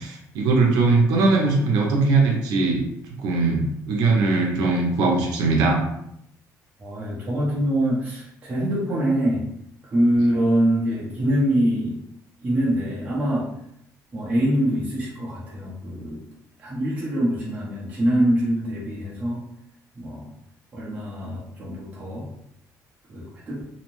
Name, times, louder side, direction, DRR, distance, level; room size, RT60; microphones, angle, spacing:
voice 1, 0.0-2.8 3.2-5.8, right 3 dB, 80° right, 0 dB, 0.6 m, -20 dB
voice 2, 6.8-9.4 9.8-12.0 12.4-13.5 14.1-16.2 16.6-19.4 19.9-20.3 20.7-22.3 23.1-23.6, right 1 dB, 20° right, -6 dB, 0.6 m, -24 dB
2.7 x 2.0 x 3.0 m, 0.76 s
cardioid pair, 170°, 7 cm